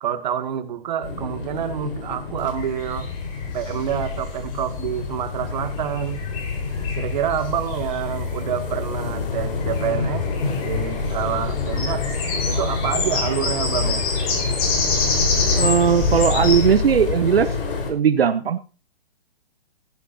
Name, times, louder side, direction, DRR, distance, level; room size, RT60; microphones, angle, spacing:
voice 1, 0.0-3.1 3.5-6.2 7.0-10.3 10.6-12.0 12.5-14.1, right 10 dB, 50° right, 8 dB, 2.1 m, -27 dB
sound 1, 1.0-17.9, left 4 dB, 65° left, 4.5 m, -27 dB
sound 2, 2.6-16.7, left 4 dB, 40° left, 5.3 m, -29 dB
voice 2, 15.6-17.5 17.9-18.6, right 7 dB, 80° right, 10 dB, 1.1 m, -18 dB
15.5 x 12.5 x 2.8 m, 0.33 s
hypercardioid pair, 150°, 29 cm